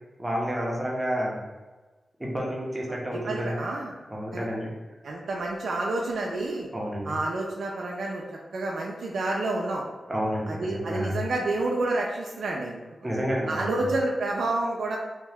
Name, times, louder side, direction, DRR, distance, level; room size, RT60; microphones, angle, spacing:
voice 1, 0.2-1.4 2.2-3.6 4.1-4.7 6.7-7.1 10.1-11.2 13.0-13.8, equal, 15° right, -3 dB, 0.6 m, -30 dB
voice 2, 2.9-3.9 4.3-4.5 5.0-6.7 7.0-8.2 8.5-9.8 10.5-12.8 13.5-15.0, right 2 dB, 85° right, -2 dB, 0.4 m, -29 dB
2.8 x 2.1 x 3.3 m, 1.2 s
wide cardioid pair, 135°, 0 cm